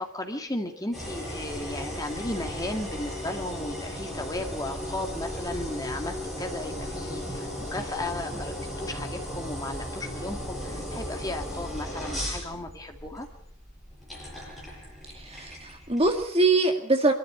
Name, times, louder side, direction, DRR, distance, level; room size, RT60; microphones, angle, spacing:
voice 1, 0.0-13.3, left 1 dB, 15° left, 4 dB, 2.2 m, -35 dB
sound 1, 0.9-16.3, equal, ahead, 7.4 m, -36 dB
voice 2, 15.1-17.1, right 2 dB, 25° right, 4 dB, 2.1 m, -23 dB
24.0 x 14.0 x 8.7 m, 0.62 s
head